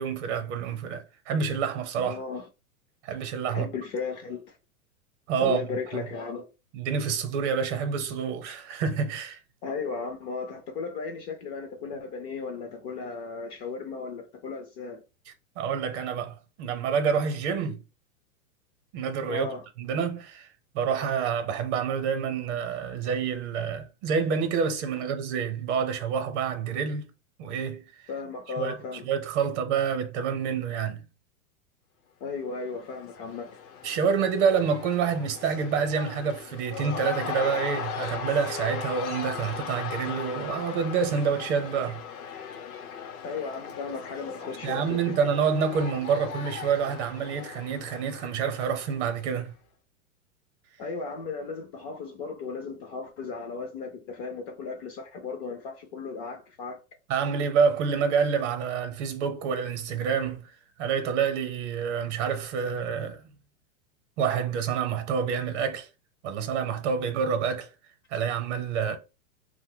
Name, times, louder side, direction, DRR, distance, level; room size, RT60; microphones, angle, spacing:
voice 1, 0.0-2.2 3.0-3.7 5.3-5.6 6.7-9.4 15.6-17.8 18.9-19.5 19.8-20.5 20.7-27.1 27.4-27.8 28.6-28.7 29.0-31.0 33.8-42.0 44.6-49.5 57.1-60.5 60.8-63.2 64.2-65.9 66.2-67.7 68.1-69.0, right 6 dB, 50° right, 0.8 m, -27 dB
voice 2, 2.0-2.5 3.5-4.6 5.4-6.5 9.6-15.0 19.3-19.6 28.1-29.1 32.2-33.6 43.2-45.2 50.8-56.8, left 4 dB, 30° left, 0.4 m, -35 dB
Cheering / Crowd, 32.5-49.4, left 7 dB, 75° left, 0.8 m, -38 dB
2.6 x 2.1 x 3.7 m
hypercardioid pair, 130°, 43 cm